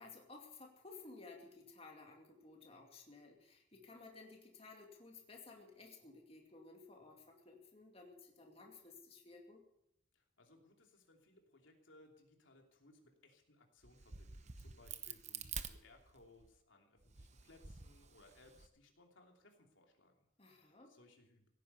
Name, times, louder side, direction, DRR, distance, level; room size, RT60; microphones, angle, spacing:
voice 1, 0.0-9.6 20.4-20.9, left 3 dB, 30° left, 1 dB, 2.4 m, -56 dB
voice 2, 10.1-21.5, left 2 dB, 80° left, 2 dB, 3.0 m, -65 dB
Crack, 13.8-16.5 17.0-18.7, right 7 dB, 35° right, 0.9 m, -49 dB
17.0 x 9.9 x 8.1 m, 0.79 s
head